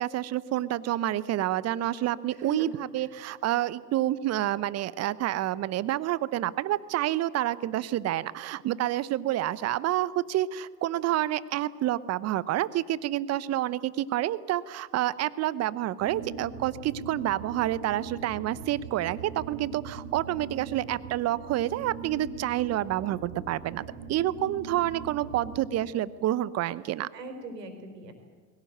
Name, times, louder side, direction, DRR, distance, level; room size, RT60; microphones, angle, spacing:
voice 1, 0.0-23.8 24.1-27.1, right 13 dB, 30° right, 18 dB, 0.9 m, -28 dB
voice 2, 2.3-3.1 27.1-28.1, equal, 75° right, 6 dB, 4.5 m, -40 dB
sound 1, 16.0-25.9, right 5 dB, 55° right, 3.3 m, -41 dB
21.5 x 17.5 x 9.4 m, 1.5 s
hypercardioid pair, 90°, 49 cm